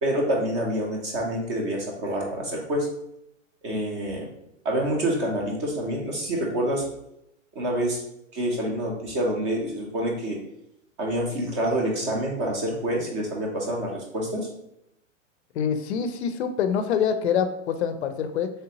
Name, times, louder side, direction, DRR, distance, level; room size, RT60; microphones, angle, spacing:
voice 1, 0.0-2.9 3.6-4.3 4.6-6.8 7.5-8.0 8.3-10.4 11.0-14.5, right 1 dB, 25° right, 0 dB, 0.5 m, -27 dB
voice 2, 15.5-18.5, left 7 dB, 60° left, 9 dB, 0.4 m, -25 dB
3.3 x 2.8 x 2.8 m, 0.80 s
hypercardioid pair, 155°, 38 cm